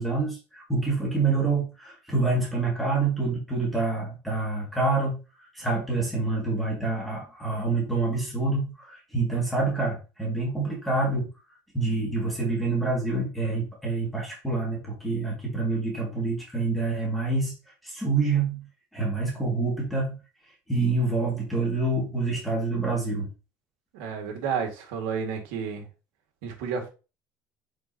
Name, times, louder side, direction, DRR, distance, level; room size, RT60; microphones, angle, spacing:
voice 1, 0.0-5.2 5.5-11.3 11.7-17.5 17.8-18.6 18.9-20.2 20.7-23.3, right 3 dB, ahead, -3 dB, 2.2 m, -27 dB
voice 2, 23.9-25.9 26.4-26.9, right 6 dB, 90° right, 3 dB, 2.1 m, -31 dB
8.1 x 4.8 x 2.9 m, 0.32 s
cardioid pair, 155°, 7 cm